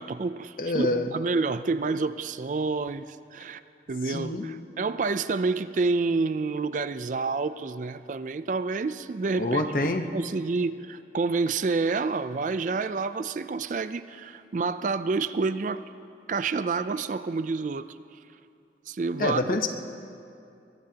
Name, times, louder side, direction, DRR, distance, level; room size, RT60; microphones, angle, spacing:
voice 1, 0.0-3.6 3.9-15.8 16.3-17.9 18.9-19.4, right 4 dB, 45° right, 13 dB, 0.4 m, -28 dB
voice 2, 0.6-1.1 4.1-4.5 9.4-10.0 19.2-19.7, left 2 dB, 50° left, 6 dB, 0.9 m, -26 dB
23.0 x 21.0 x 2.9 m, 2.5 s
head